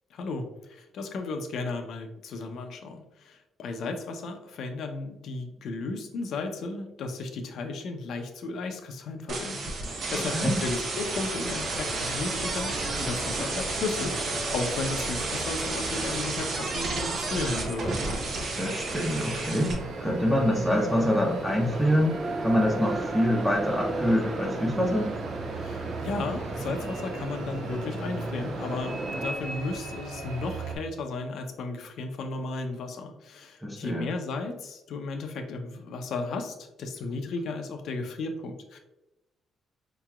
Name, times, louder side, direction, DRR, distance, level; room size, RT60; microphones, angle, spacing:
voice 1, 0.1-14.2 14.5-18.0 25.5-38.8, left 3 dB, 75° left, 5 dB, 0.6 m, -34 dB
sound 1, 9.3-19.7, right 3 dB, 60° right, 0.8 m, -32 dB
sound 2, 11.3-30.8, right 2 dB, 90° right, 0.6 m, -39 dB
sound 3, 12.4-29.3, right 2 dB, 30° right, 0.4 m, -37 dB
voice 2, 18.5-22.1 22.4-25.1 33.6-34.1, equal, 5° right, -2 dB, 0.9 m, -25 dB
4.6 x 3.0 x 2.3 m, 0.95 s
cardioid pair, 90°, 0 cm